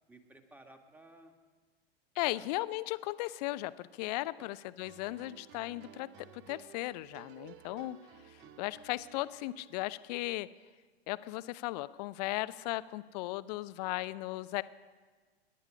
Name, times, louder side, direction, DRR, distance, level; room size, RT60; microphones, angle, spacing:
voice 1, 0.1-1.3 2.3-2.5 4.4-4.5 8.4-8.6 13.8-14.2, right 2 dB, 5° right, 5 dB, 1.8 m, -57 dB
voice 2, 2.2-8.0 8.3-10.5 11.1-14.6, left 18 dB, 40° left, 17 dB, 0.6 m, -36 dB
sound 1, 4.8-10.0, right 10 dB, 35° right, 1.0 m, -55 dB
26.0 x 11.0 x 5.0 m, 1.4 s
figure-of-eight pair, 100°, 31 cm